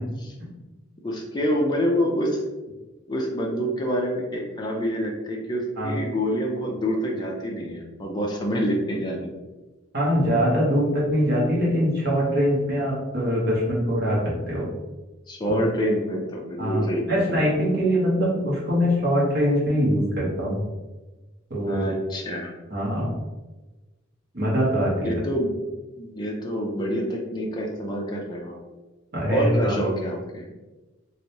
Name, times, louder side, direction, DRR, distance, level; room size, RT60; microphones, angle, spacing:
voice 1, 1.0-2.4 3.1-9.3 15.3-17.4 21.7-22.5 25.0-25.5 26.0-28.5 29.3-30.5, equal, 20° left, -1 dB, 0.5 m, -27 dB
voice 2, 9.9-14.7 15.5-15.6 16.6-20.6 21.5-21.9 22.7-23.1 24.3-25.1 29.1-29.8, equal, 55° right, -5 dB, 1.1 m, -23 dB
3.2 x 2.6 x 2.8 m, 1.1 s
head